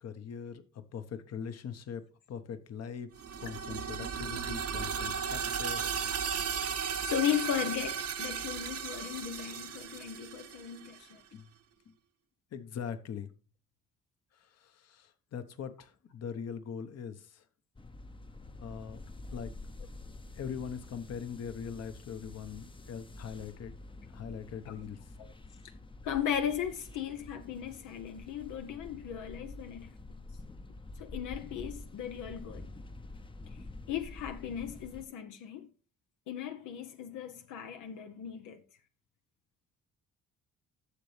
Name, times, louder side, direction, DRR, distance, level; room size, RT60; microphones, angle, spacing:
voice 1, 0.0-3.1 3.4-6.0 11.3-11.5 12.5-13.3 14.3-17.4 18.6-19.0 19.3-19.5 20.3-23.7 24.1-25.0, left 7 dB, 55° left, 1.1 m, -41 dB
sound 1, 3.2-11.0, right 7 dB, 55° right, 0.9 m, -35 dB
voice 2, 5.8-6.2 7.0-11.2 25.2-25.3 26.0-29.9 31.0-32.7 33.9-35.7 36.3-38.6, left 9 dB, 85° left, 0.9 m, -36 dB
sound 2, 17.7-35.1, left 2 dB, 15° left, 0.7 m, -48 dB
11.5 x 7.0 x 3.3 m
cardioid pair, 90°, 30 cm